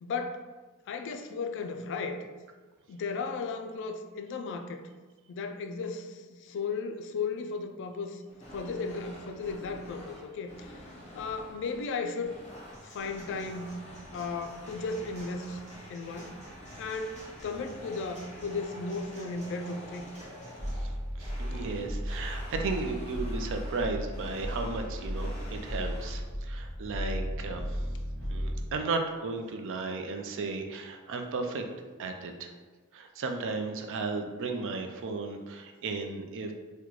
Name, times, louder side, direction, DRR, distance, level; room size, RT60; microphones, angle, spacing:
voice 1, 0.0-0.4 0.9-2.2 2.9-4.8 5.3-8.2 8.5-10.8 11.1-12.3 12.8-13.7 14.1-15.6 15.9-16.4 16.8-20.1, left 4 dB, 55° left, 6 dB, 0.3 m, -35 dB
sound 1, 8.3-26.2, equal, 30° left, 1.1 m, -48 dB
sound 2, 12.7-20.7, right 1 dB, 30° right, 0.8 m, -54 dB
sound 3, 20.6-28.6, equal, 10° right, 1.2 m, -35 dB
voice 2, 21.2-27.8 28.3-31.6 32.0-32.5 32.9-36.5, right 3 dB, 60° right, 5 dB, 0.4 m, -35 dB
3.7 x 2.2 x 3.1 m, 1.3 s
head